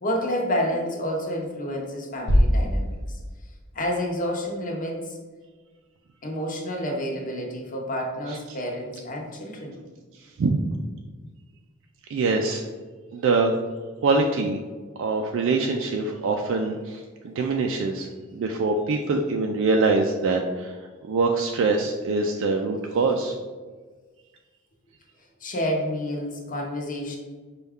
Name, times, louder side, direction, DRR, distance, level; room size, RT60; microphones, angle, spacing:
voice 1, 0.0-3.2 3.7-5.2 6.2-9.8 25.2-27.2, equal, 40° left, 0 dB, 0.8 m, -29 dB
sound 1, 2.3-4.1, equal, 75° left, 0.7 m, -23 dB
voice 2, 12.1-12.6 13.1-13.5 14.0-14.6 15.0-20.8 21.1-23.4, right 3 dB, 65° right, 2 dB, 0.3 m, -24 dB
5.3 x 2.3 x 3.5 m, 1.4 s
head